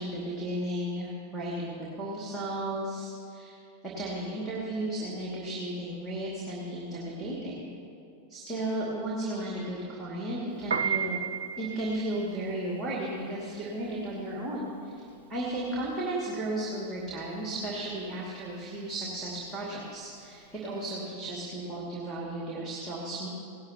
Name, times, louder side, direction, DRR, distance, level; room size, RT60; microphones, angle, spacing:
voice 1, 0.0-1.7 2.0-3.6 3.8-7.7 8.3-11.2 11.6-15.0 15.3-23.3, right 1 dB, 10° right, -5 dB, 2.4 m, -34 dB
Piano, 10.6-21.0, right 7 dB, 65° right, 0.6 m, -36 dB
18.5 x 11.5 x 3.0 m, 2.5 s
figure-of-eight pair, 90°, 0 cm